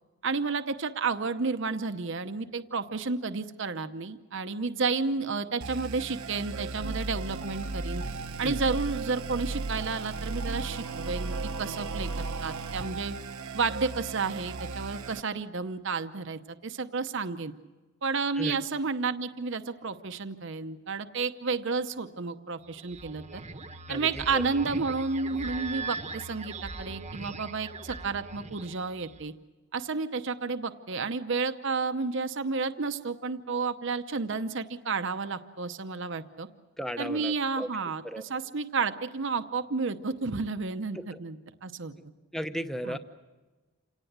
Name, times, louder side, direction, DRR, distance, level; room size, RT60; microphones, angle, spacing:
voice 1, 0.2-8.0 8.4-13.2 13.5-17.5 18.0-23.4 23.9-29.3 29.7-36.5 37.0-41.9 42.8-43.0, right 4 dB, 60° right, 9 dB, 0.8 m, -31 dB
sound 1, 5.6-15.2, right 3 dB, 80° right, 1.1 m, -35 dB
sound 2, 22.7-29.3, right 3 dB, 30° right, 1.1 m, -40 dB
voice 2, 23.9-24.5 36.8-37.7 38.0-38.2 42.3-43.0, equal, ahead, 8 dB, 0.9 m, -35 dB
28.0 x 18.0 x 8.1 m, 1.2 s
head